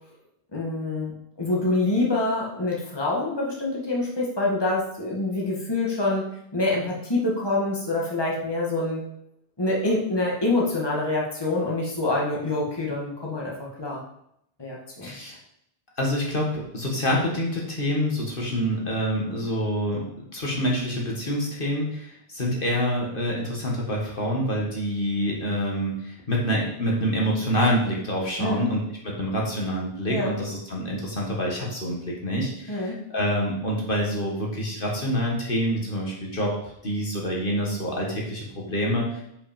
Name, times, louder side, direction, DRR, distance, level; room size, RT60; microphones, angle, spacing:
voice 1, 0.5-6.3 6.5-9.0 9.6-13.5 13.8-14.0 14.6-15.1 28.4-28.7 30.1-30.4 32.7-33.0, left 2 dB, 25° left, -3 dB, 1.9 m, -26 dB
voice 2, 15.0-15.4 16.0-20.1 20.3-39.2, equal, 55° left, -3 dB, 2.0 m, -27 dB
8.4 x 5.6 x 5.2 m, 0.75 s
omnidirectional pair, 1.0 m